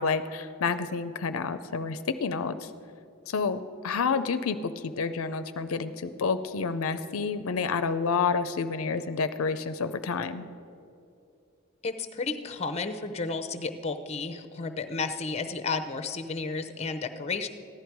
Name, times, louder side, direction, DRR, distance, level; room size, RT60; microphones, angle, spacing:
voice 1, 0.0-2.7 3.3-10.5, left 5 dB, 75° left, 11 dB, 0.5 m, -29 dB
voice 2, 11.8-17.5, left 4 dB, 30° left, 9 dB, 0.6 m, -32 dB
14.5 x 11.5 x 4.6 m, 2.6 s
head